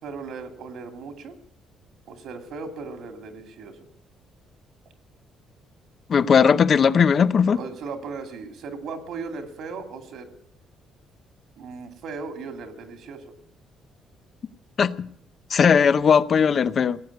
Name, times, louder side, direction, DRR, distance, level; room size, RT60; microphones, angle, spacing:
voice 1, 0.0-1.4 2.1-3.8 7.5-10.3 11.6-13.3, right 4 dB, 70° right, 2.5 m, -37 dB
voice 2, 6.1-7.6 14.8-15.1 15.5-17.0, left 6 dB, 40° left, 0.6 m, -18 dB
17.5 x 8.1 x 9.6 m
cardioid pair, 125°, 0 cm